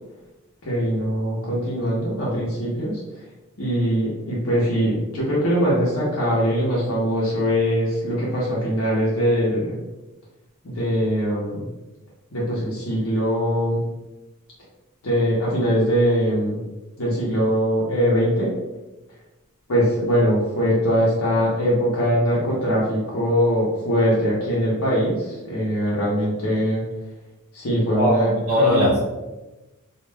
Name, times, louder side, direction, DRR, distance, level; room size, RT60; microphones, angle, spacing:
voice 1, 0.6-3.0 3.6-9.7 10.6-11.6 12.3-13.8 15.0-16.6 17.0-18.5 19.7-26.8 27.5-28.3 28.6-28.9, equal, 70° left, -7 dB, 0.7 m, -22 dB
voice 2, 27.9-29.0, left 1 dB, 75° right, -6 dB, 0.7 m, -19 dB
2.4 x 2.1 x 3.3 m, 1.1 s
head